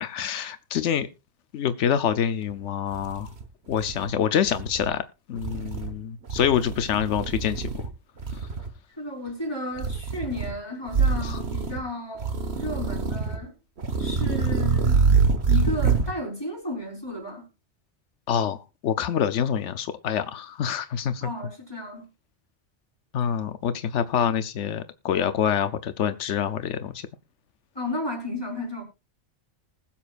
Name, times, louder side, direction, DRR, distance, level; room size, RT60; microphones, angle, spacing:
voice 1, 0.0-1.1 1.5-3.3 3.7-5.0 5.3-7.8 11.2-11.4 18.3-18.6 18.8-21.3 23.1-26.9, left 8 dB, 90° left, 1.0 m, -26 dB
sound 1, 2.5-2.6 2.9-4.1 4.4-4.9 5.4-5.9 6.3-7.9 8.2-8.7 9.8-10.5 10.9-11.8 12.2-13.4 13.8-16.1, right 5 dB, 65° right, 1.6 m, -25 dB
voice 2, 9.0-13.5 14.0-15.0 15.5-17.5 21.2-22.1 27.7-28.8, left 1 dB, 20° left, 4.4 m, -33 dB
20.5 x 7.3 x 2.5 m
omnidirectional pair, 1.2 m